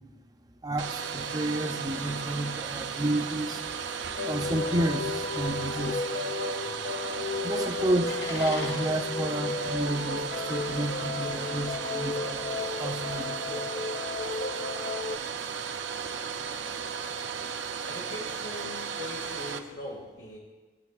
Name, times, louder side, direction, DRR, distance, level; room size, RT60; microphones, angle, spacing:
voice 1, 0.6-3.6 4.2-6.0 7.4-13.7, right 1 dB, 20° right, 6 dB, 0.5 m, -31 dB
Domestic sounds home sounds, 0.8-19.6, right 6 dB, 80° right, 0.7 m, -35 dB
sound 1, 4.2-15.2, left 4 dB, 45° left, 0.4 m, -34 dB
sound 2, 6.9-13.2, left 2 dB, 65° left, 2.5 m, -46 dB
voice 2, 17.8-20.4, left 1 dB, 90° left, -3 dB, 1.9 m, -41 dB
17.5 x 8.6 x 2.4 m, 1.2 s
head